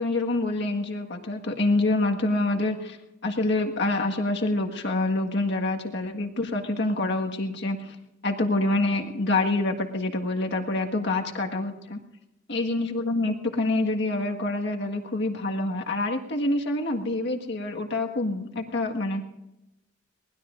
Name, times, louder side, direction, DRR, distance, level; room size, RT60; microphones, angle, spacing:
voice 1, 0.0-3.0 3.2-7.9 8.2-12.0 12.5-19.2, left 2 dB, 60° left, 2 dB, 1.7 m, -26 dB
23.0 x 19.5 x 2.6 m, 0.91 s
head